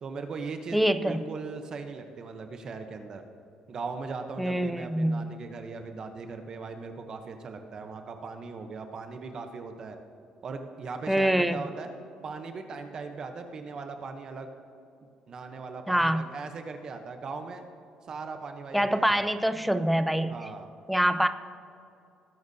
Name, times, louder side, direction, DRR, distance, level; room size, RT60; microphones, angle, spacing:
voice 1, 0.0-3.2 3.7-10.0 10.4-11.9 12.2-14.5 15.3-17.6 18.1-19.3 20.3-20.7, right 4 dB, 35° right, 6 dB, 0.8 m, -39 dB
voice 2, 0.7-1.2 4.4-5.3 11.1-11.6 15.9-16.2 18.7-20.4 20.9-21.3, equal, ahead, 10 dB, 0.3 m, -25 dB
19.5 x 10.5 x 2.7 m, 2.7 s
cardioid pair, 175°, 2 cm